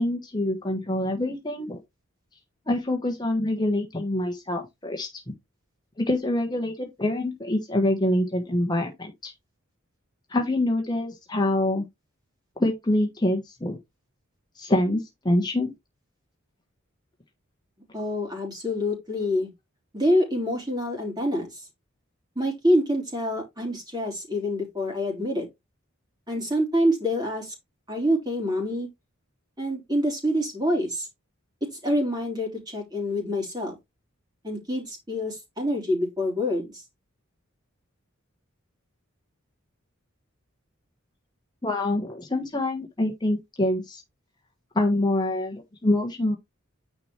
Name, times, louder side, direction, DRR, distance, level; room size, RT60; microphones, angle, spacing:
voice 1, 0.0-1.8 2.7-5.3 6.0-9.3 10.3-11.8 12.6-13.8 14.6-15.7 41.6-44.0 44.7-46.4, left 1 dB, 20° left, 1.3 m, -25 dB
voice 2, 17.9-19.5 19.9-21.7 22.4-25.5 26.3-27.5 27.9-28.9 29.6-31.1 31.8-33.8 34.4-36.8, equal, 20° right, 3.7 m, -26 dB
9.6 x 4.4 x 3.2 m
head